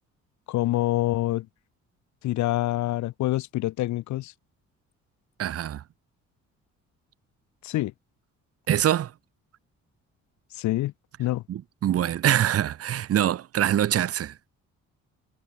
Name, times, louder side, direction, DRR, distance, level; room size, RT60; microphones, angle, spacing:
voice 1, 0.5-1.5 2.2-4.3 7.6-7.9 10.5-10.9 11.2-11.4, left 16 dB, 70° left, 0.6 m, -26 dB
voice 2, 5.4-5.8 8.7-9.1 11.5-14.3, right 11 dB, 50° right, 0.8 m, -24 dB
cardioid pair, 90°, 30 cm